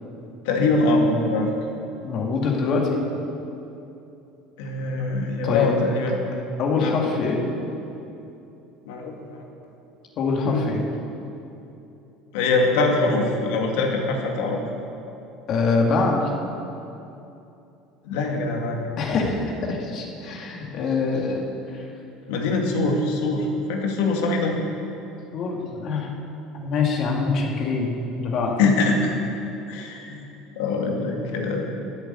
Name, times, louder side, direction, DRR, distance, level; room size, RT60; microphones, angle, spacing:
voice 1, 0.4-1.5 4.6-6.1 6.8-7.0 8.9-9.4 10.4-10.7 12.3-14.6 18.0-18.8 22.3-24.6 28.6-29.1 29.7-30.2 30.6-31.7, left 3 dB, 80° left, 1 dB, 2.2 m, -23 dB
voice 2, 2.0-3.0 5.4-5.8 6.6-7.4 10.2-10.8 15.5-16.3 19.0-21.9 25.3-26.1 26.5-28.6, left 4 dB, 45° left, 0 dB, 2.1 m, -24 dB
12.5 x 7.6 x 9.3 m, 2.8 s
cardioid pair, 145°, 0 cm